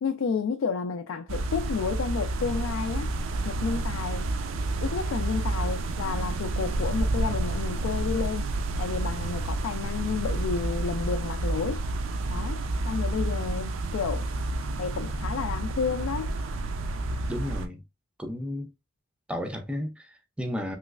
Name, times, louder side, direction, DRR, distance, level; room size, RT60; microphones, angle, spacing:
voice 1, 0.0-3.1 3.4-4.3 4.8-8.5 8.8-11.8 12.3-14.2 14.8-16.3, left 5 dB, 80° left, 0.3 m, -31 dB
sound 1, 1.3-17.7, right 2 dB, 75° right, 0.4 m, -30 dB
voice 2, 17.3-17.8 18.2-18.7 19.3-20.8, left 1 dB, 5° right, 0.4 m, -33 dB
3.1 x 3.0 x 2.3 m
head